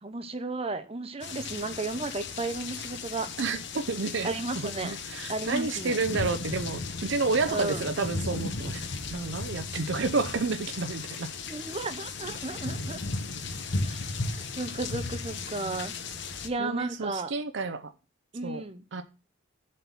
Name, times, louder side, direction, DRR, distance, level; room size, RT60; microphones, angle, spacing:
voice 1, 0.0-3.3 4.2-4.9 5.3-6.0 7.5-7.9 11.5-13.0 13.9-14.0 14.4-15.9 16.4-17.3 18.3-19.0, right 2 dB, 30° right, 0.8 m, -34 dB
sound 1, 1.2-16.5, left 3 dB, 60° left, 1.0 m, -36 dB
voice 2, 3.4-4.3 4.8-8.8 9.1-11.3 15.6-15.8 16.6-17.9 18.4-18.6 18.9-19.0, right 3 dB, 60° right, 0.6 m, -30 dB
7.6 x 4.3 x 7.0 m
head